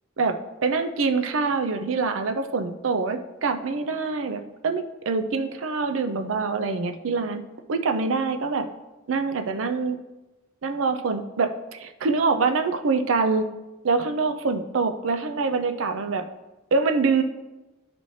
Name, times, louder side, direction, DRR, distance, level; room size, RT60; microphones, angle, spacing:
voice 1, 0.6-7.4 7.7-8.7 9.1-10.0 10.6-13.5 13.8-16.3 16.7-17.2, right 4 dB, 75° right, 8 dB, 0.5 m, -25 dB
12.5 x 4.2 x 3.2 m, 1.1 s
head